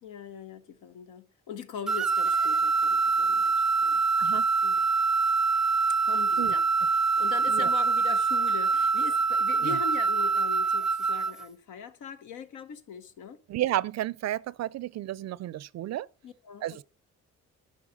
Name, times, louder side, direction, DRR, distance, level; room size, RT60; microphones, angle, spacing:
voice 1, 0.0-4.0 4.6-4.9 6.0-6.6 6.9-13.4 16.2-16.8, left 6 dB, 85° left, 1.2 m, -41 dB
sound 1, 1.9-11.4, right 4 dB, ahead, 0.6 m, -25 dB
voice 2, 13.5-16.1 16.6-16.8, right 14 dB, 60° right, 0.5 m, -32 dB
11.0 x 5.8 x 5.2 m
cardioid pair, 90°, 30 cm